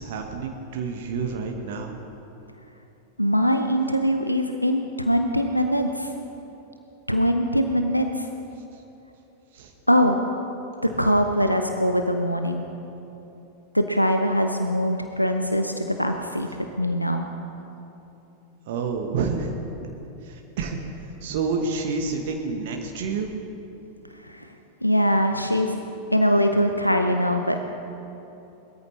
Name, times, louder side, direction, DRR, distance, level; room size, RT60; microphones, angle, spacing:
voice 1, 0.0-2.0 9.5-9.7 10.8-11.0 18.7-19.5 20.2-23.3, right 4 dB, 55° right, 3 dB, 1.2 m, -29 dB
voice 2, 3.2-6.1 7.1-8.3 9.9-10.2 10.8-12.6 13.7-16.5 16.8-17.3 24.2-24.5 24.8-25.8 26.1-27.7, equal, 90° left, 5 dB, 0.6 m, -22 dB
21.0 x 13.5 x 3.2 m, 3.0 s
figure-of-eight pair, 90°, 0 cm